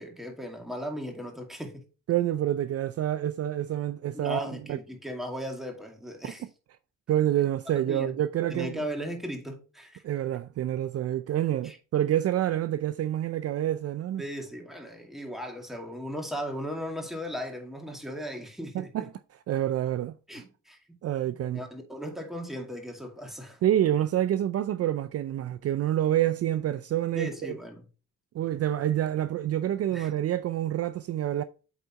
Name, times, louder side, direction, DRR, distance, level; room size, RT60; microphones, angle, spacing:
voice 1, 0.0-1.8 4.1-6.4 7.9-8.1 8.5-10.0 11.6-11.8 14.2-19.1 20.3-21.0 21.2-23.6 27.1-27.8 29.9-30.1, equal, ahead, 2.2 m, -37 dB
voice 2, 2.1-4.4 4.7-4.8 6.2-6.5 7.1-8.8 10.0-14.2 18.7-19.1 19.5-20.1 21.0-21.6 23.6-27.6 28.3-31.4, right 12 dB, 55° right, 0.5 m, -27 dB
8.3 x 4.1 x 4.5 m
cardioid pair, 90°, 30 cm